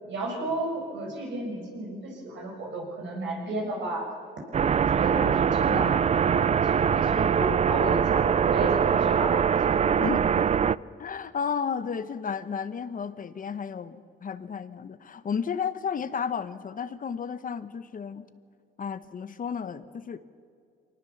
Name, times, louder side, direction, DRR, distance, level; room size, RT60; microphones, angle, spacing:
voice 1, 0.0-4.1 4.5-10.0, right 2 dB, 70° right, 0 dB, 6.7 m, -33 dB
sound 1, 4.5-10.8, right 7 dB, 35° right, 0.4 m, -23 dB
voice 2, 10.0-18.3 18.8-20.2, left 6 dB, 45° left, 13 dB, 1.0 m, -33 dB
24.5 x 19.0 x 7.2 m, 2.2 s
cardioid pair, 90°, 20 cm